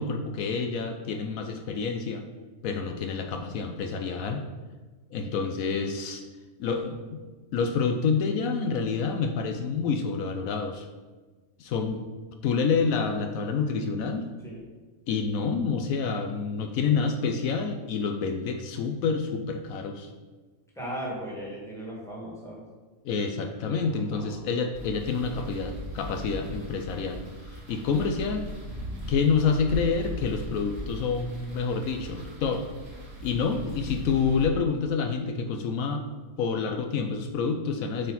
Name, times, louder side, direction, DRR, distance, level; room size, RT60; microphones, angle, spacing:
voice 1, 0.0-2.2 2.6-4.4 5.1-6.2 6.6-7.2 7.5-10.9 11.6-12.0 12.4-14.3 15.1-20.1 23.0-27.2 27.7-28.4 29.1-32.6 33.2-36.0 36.4-38.1, left 5 dB, 80° left, 5 dB, 1.0 m, -28 dB
voice 2, 20.8-22.6 23.7-24.4, right 1 dB, ahead, -5 dB, 1.8 m, -37 dB
sound 1, 24.7-34.5, right 1 dB, 50° right, 1.7 m, -39 dB
8.0 x 4.4 x 4.1 m, 1.3 s
omnidirectional pair, 1.5 m